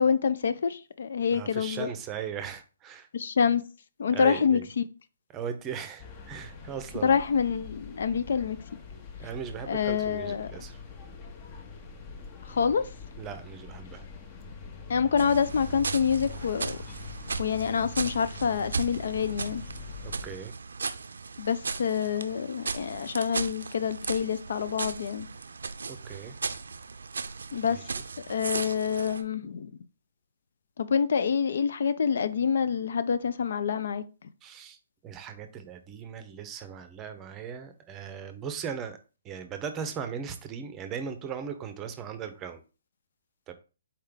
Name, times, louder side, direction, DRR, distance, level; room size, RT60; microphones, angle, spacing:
voice 1, 0.0-1.9 3.1-3.6 4.0-4.8 7.0-8.6 9.7-10.5 12.5-12.8 14.9-16.8 17.4-19.6 21.4-25.3 27.5-27.9 28.3-29.8 30.8-34.0, left 6 dB, 60° left, 0.4 m, -27 dB
voice 2, 1.3-3.1 4.1-4.6 5.3-7.2 9.2-10.8 13.2-14.0 20.2-20.5 25.9-26.4 27.7-27.8 34.4-34.8 35.0-39.0 39.2-42.6 43.5-43.6, right 7 dB, 20° right, 0.6 m, -38 dB
sound 1, 6.0-20.4, left 5 dB, 30° left, 0.9 m, -44 dB
sound 2, 15.2-29.2, right 4 dB, 70° right, 0.5 m, -37 dB
4.4 x 3.2 x 3.7 m
figure-of-eight pair, 130°, 0 cm